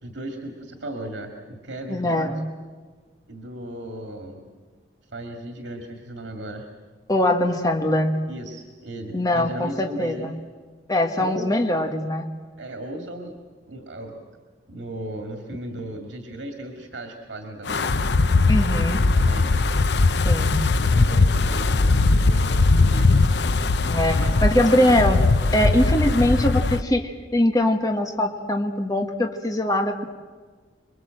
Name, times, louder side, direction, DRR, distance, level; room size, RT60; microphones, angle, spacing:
voice 1, 0.0-2.3 3.3-4.5 5.1-6.7 8.3-10.3 11.1-11.5 12.6-13.4 13.7-14.2 14.7-17.9 18.9-19.5 20.8-23.3 24.2-25.0, right 1 dB, 85° right, 3 dB, 2.3 m, -36 dB
voice 2, 1.9-2.4 7.1-8.2 9.1-10.3 10.9-12.3 18.5-19.0 20.2-20.6 23.8-25.2 25.5-30.0, left 1 dB, 20° left, 4 dB, 1.6 m, -22 dB
Wind, 17.7-26.8, left 3 dB, 70° left, 0.7 m, -20 dB
26.5 x 22.5 x 7.7 m, 1.5 s
head